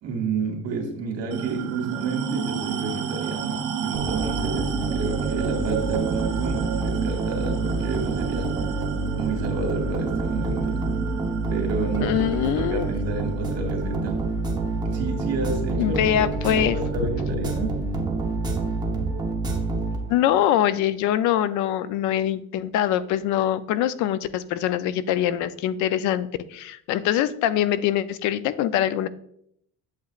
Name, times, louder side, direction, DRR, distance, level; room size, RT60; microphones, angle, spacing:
voice 1, 0.0-8.5 9.2-10.8 11.5-12.1 12.5-14.3 14.8-16.0 16.5-17.8, right 4 dB, 55° right, 2 dB, 2.3 m, -30 dB
sound 1, 1.3-16.1, right 7 dB, 75° right, 0.9 m, -32 dB
sound 2, 3.9-20.4, right 3 dB, 15° right, 0.9 m, -27 dB
voice 2, 12.0-12.8 15.8-16.8 20.1-29.1, left 11 dB, 70° left, 15 dB, 0.5 m, -23 dB
8.2 x 8.0 x 2.4 m, 0.71 s
cardioid pair, 165°, 30 cm